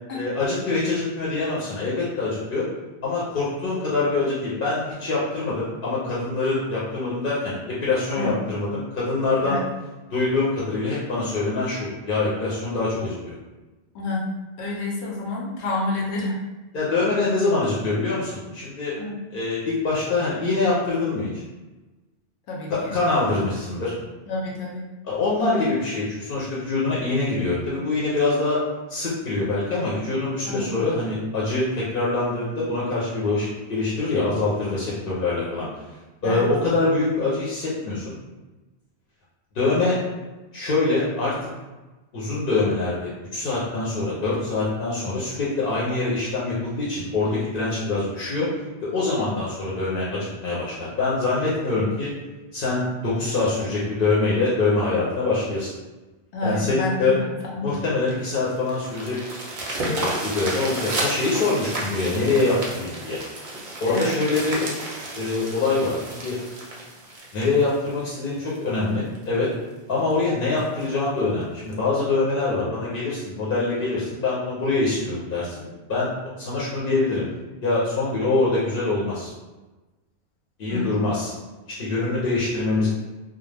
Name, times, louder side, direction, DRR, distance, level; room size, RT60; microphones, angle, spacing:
voice 1, 0.1-2.7 3.0-9.6 10.1-13.3 16.7-18.9 19.3-21.4 22.7-23.9 25.0-28.6 28.9-35.7 36.2-38.1 39.5-40.0 40.5-41.4 42.1-48.5 48.8-52.1 52.5-55.7 56.4-57.2 57.6-59.2 59.8-63.2 63.8-64.6 65.2-66.4 67.3-69.5 69.9-76.1 76.4-77.2 77.6-79.3 80.6-81.3 81.8-82.9, left 3 dB, 60° left, -7 dB, 0.8 m, -24 dB
voice 2, 13.9-16.4 19.0-19.3 22.5-23.0 24.3-24.8 30.5-30.7 36.2-36.5 56.3-57.8 63.9-64.1 80.7-80.9, left 2 dB, 85° left, -3 dB, 0.9 m, -29 dB
sound 1, 58.1-68.6 69.1-69.2 69.7-69.8 70.1-70.2 70.6-70.8 71.7-71.8, right 1 dB, 45° right, 0.5 m, -32 dB
2.3 x 2.0 x 3.2 m, 1.1 s
omnidirectional pair, 1.1 m